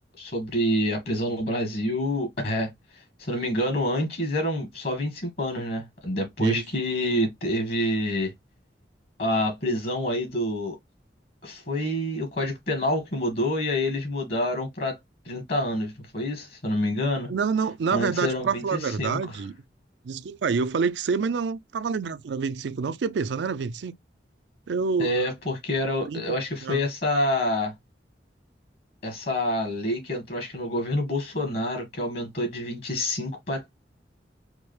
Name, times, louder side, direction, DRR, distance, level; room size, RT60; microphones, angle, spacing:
voice 1, 0.2-2.7 3.2-8.3 9.2-10.8 11.4-15.0 15.2-17.3 17.9-19.2 25.0-27.7 29.0-33.7, left 1 dB, 55° left, 1.5 m, -27 dB
voice 2, 17.3-19.5 20.0-24.0 24.7-25.1 26.0-26.2 26.6-26.8, right 5 dB, 80° right, 0.4 m, -27 dB
4.6 x 2.1 x 3.1 m
head